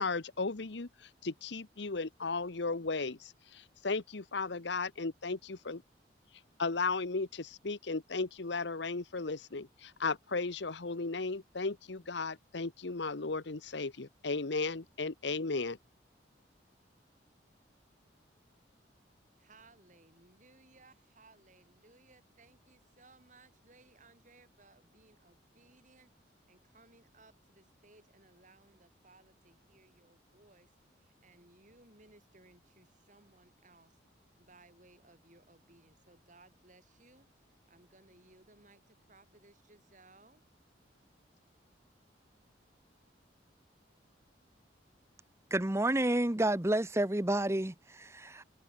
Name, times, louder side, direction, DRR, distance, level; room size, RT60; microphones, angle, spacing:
voice 1, 0.0-5.8 6.6-15.8, left 3 dB, 70° left, 1.0 m, -35 dB
voice 2, 19.4-34.0 34.4-40.4, right 2 dB, 40° right, 6.7 m, -62 dB
voice 3, 45.5-48.4, right 1 dB, 15° right, 0.8 m, -30 dB
head